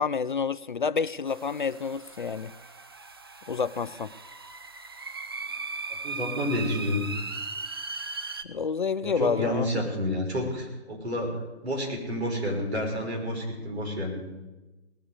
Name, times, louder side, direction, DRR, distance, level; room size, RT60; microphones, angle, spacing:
voice 1, 0.0-2.5 3.5-4.1 8.5-9.8, left 5 dB, 50° left, 17 dB, 0.4 m, -29 dB
sound 1, 1.3-8.4, right 4 dB, 25° right, 0.4 m, -38 dB
voice 2, 6.0-7.1 9.0-14.2, left 1 dB, 70° right, 0 dB, 5.5 m, -30 dB
18.5 x 8.5 x 8.4 m, 1.1 s
figure-of-eight pair, 135°, 33 cm